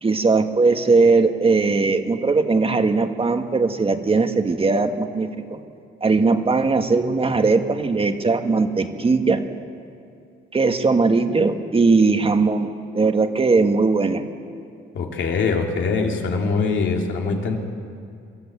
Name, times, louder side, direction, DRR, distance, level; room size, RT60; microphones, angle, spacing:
voice 1, 0.0-5.6 6.0-9.4 10.5-12.7 12.9-14.2, right 4 dB, 30° right, 7 dB, 1.5 m, -19 dB
voice 2, 14.9-17.6, left 4 dB, 75° left, 2 dB, 2.6 m, -23 dB
24.0 x 13.5 x 8.4 m, 2.4 s
cardioid pair, 90°, 20 cm